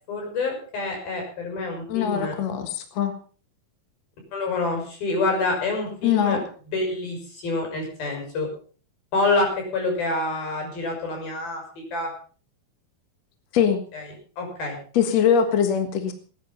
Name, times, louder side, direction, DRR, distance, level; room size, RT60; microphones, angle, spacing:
voice 1, 0.1-2.3 4.3-6.4 6.7-8.5 9.1-11.6 11.9-12.1 13.9-14.0 14.4-14.8, left 3 dB, 75° left, 2 dB, 8.2 m, -27 dB
voice 2, 1.9-3.1 6.0-6.4 13.5-13.8 14.9-16.1, left 8 dB, 55° left, 7 dB, 2.5 m, -22 dB
19.5 x 11.0 x 5.6 m, 0.41 s
omnidirectional pair, 4.2 m